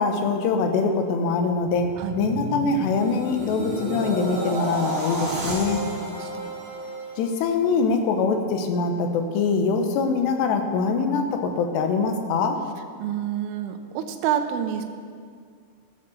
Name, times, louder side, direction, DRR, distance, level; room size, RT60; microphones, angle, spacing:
voice 1, 0.0-1.9 2.2-5.8 7.2-12.6, left 4 dB, 70° left, 5 dB, 2.8 m, -23 dB
sound 1, 1.6-7.8 8.2-8.5, right 2 dB, 35° right, 3.5 m, -32 dB
voice 2, 6.0-6.5 13.0-14.8, right 10 dB, 80° right, 6 dB, 3.2 m, -28 dB
13.5 x 9.7 x 7.0 m, 2.1 s
omnidirectional pair, 5.7 m